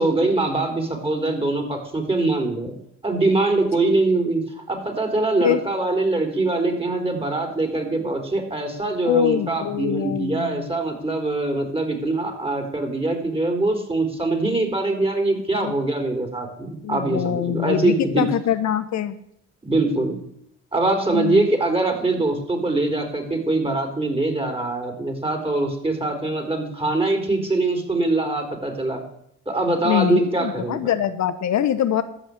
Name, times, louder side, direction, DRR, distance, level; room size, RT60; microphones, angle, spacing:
voice 1, 0.0-2.7 3.0-18.3 19.6-20.2 20.7-29.0 29.5-30.9, right 2 dB, 20° right, 4 dB, 3.9 m, -23 dB
voice 2, 9.0-10.7 15.6-15.7 16.8-19.2 21.1-21.5 29.8-32.0, left 10 dB, 60° left, 12 dB, 1.0 m, -23 dB
13.5 x 5.3 x 8.7 m, 0.72 s
hypercardioid pair, 55°, 31 cm